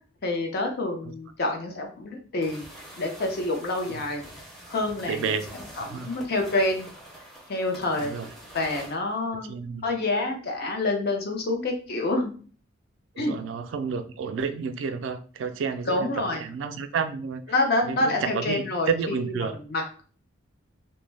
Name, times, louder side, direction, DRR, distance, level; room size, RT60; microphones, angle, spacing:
voice 1, 0.2-2.6 3.0-4.2 4.7-5.2 5.8-6.9 7.5-8.2 8.5-9.5 9.8-12.3 13.2-13.3 15.9-16.4 17.5-19.3 19.7-19.8, left 2 dB, 55° left, 2 dB, 0.6 m, -27 dB
sound 1, 2.4-9.0, right 1 dB, ahead, 0.5 m, -45 dB
voice 2, 5.1-5.6 5.9-6.1 8.0-8.3 9.3-9.9 13.2-17.4 17.8-19.6, right 5 dB, 70° right, 8 dB, 0.3 m, -31 dB
2.1 x 2.0 x 3.2 m, 0.40 s
head